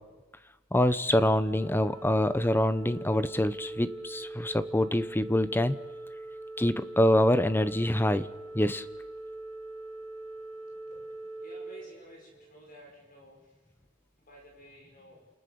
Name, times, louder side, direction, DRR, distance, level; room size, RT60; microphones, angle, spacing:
voice 1, 0.7-5.8 6.6-8.3 8.5-8.9, left 1 dB, 10° left, 13 dB, 0.8 m, -25 dB
Organ, 1.4-12.5, right 2 dB, 30° right, 5.7 m, -42 dB
voice 2, 11.4-13.5 14.3-15.3, equal, 40° left, 0 dB, 5.8 m, -52 dB
29.5 x 28.0 x 7.0 m, 1.2 s
head